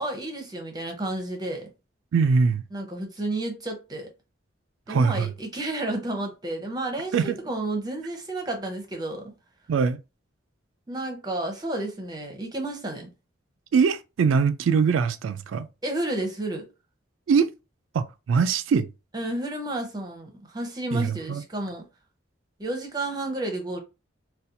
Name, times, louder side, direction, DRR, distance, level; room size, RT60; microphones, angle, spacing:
voice 1, 0.0-1.7 2.7-4.1 4.9-9.3 10.9-13.1 15.8-16.7 19.1-21.8 22.6-23.8, right 1 dB, 20° right, 0.7 m, -31 dB
voice 2, 2.1-2.6 4.9-5.3 7.1-7.4 9.7-10.0 13.7-15.7 17.3-17.5 17.9-18.9 20.9-21.4, right 5 dB, 90° right, 0.3 m, -22 dB
4.1 x 2.2 x 2.6 m
head